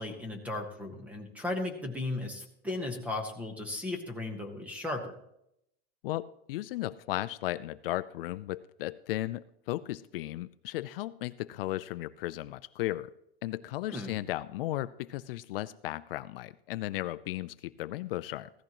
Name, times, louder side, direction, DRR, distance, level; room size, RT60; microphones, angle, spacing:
voice 1, 0.0-5.1 13.9-14.1, left 2 dB, 5° right, 4 dB, 1.1 m, -36 dB
voice 2, 6.0-13.1 13.4-18.5, left 16 dB, 65° left, 15 dB, 0.5 m, -35 dB
16.0 x 13.5 x 3.0 m, 0.77 s
supercardioid pair, 170°, 31 cm